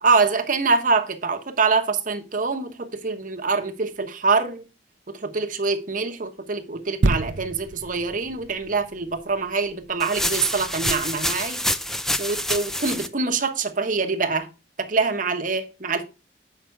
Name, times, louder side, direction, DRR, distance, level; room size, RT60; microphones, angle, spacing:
voice 1, 0.0-4.6 5.1-11.6 12.2-14.5 14.8-16.0, right 4 dB, 45° right, 1.1 m, -24 dB
sound 1, 7.0-10.6 11.2-11.3, right 2 dB, 90° right, 0.6 m, -29 dB
sound 2, 10.0-13.1, equal, ahead, 0.4 m, -27 dB
7.8 x 5.8 x 4.7 m
head